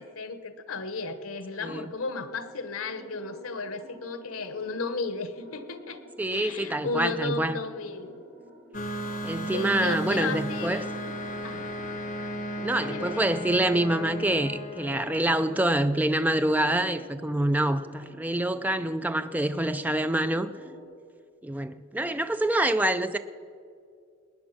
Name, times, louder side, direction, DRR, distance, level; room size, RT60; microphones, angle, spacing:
voice 1, 0.0-6.0 6.3-8.2 9.5-11.0 11.4-11.7 12.8-13.4, left 3 dB, 85° left, 1.1 m, -34 dB
sound 1, 2.2-20.8, left 1 dB, 35° right, 3.0 m, -50 dB
voice 2, 6.2-7.6 9.2-10.9 12.6-20.5 21.4-23.2, right 1 dB, 10° right, 0.3 m, -26 dB
sound 2, 8.7-16.1, equal, 40° left, 1.1 m, -35 dB
20.0 x 9.5 x 5.9 m
head